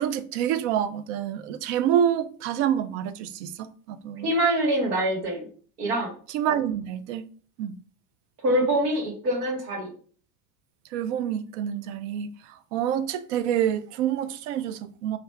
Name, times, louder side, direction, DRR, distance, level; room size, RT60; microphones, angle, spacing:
voice 1, 0.0-4.3 6.3-7.3 7.6-7.8 10.9-15.2, right 10 dB, 50° right, 0.5 m, -27 dB
voice 2, 4.2-5.5 5.8-6.1 8.4-9.9, right 1 dB, 75° right, 1.5 m, -24 dB
3.0 x 2.5 x 3.3 m
hypercardioid pair, 95°, 47 cm